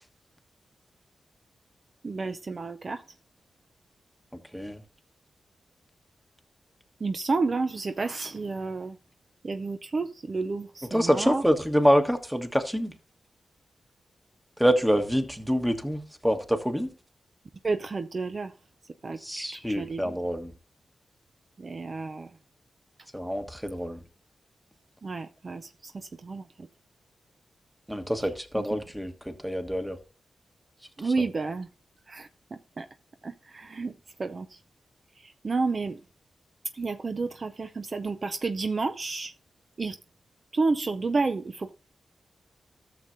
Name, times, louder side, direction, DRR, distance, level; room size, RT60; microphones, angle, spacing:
voice 1, 2.0-3.0 7.0-9.0 9.4-11.4 17.6-18.5 19.0-20.1 21.6-22.3 25.0-25.9 26.2-26.4 31.0-31.7 32.1-32.3 32.8-32.9 33.2-33.9 34.2-34.5 35.4-36.0 36.8-39.3 39.8-40.0 40.5-41.7, right 3 dB, 50° right, 0.5 m, -30 dB
voice 2, 10.8-12.9 14.6-16.9 19.2-20.5 23.1-24.0 27.9-30.0 31.0-31.3, equal, ahead, 1.4 m, -26 dB
13.5 x 6.7 x 2.6 m
cardioid pair, 60°, 0 cm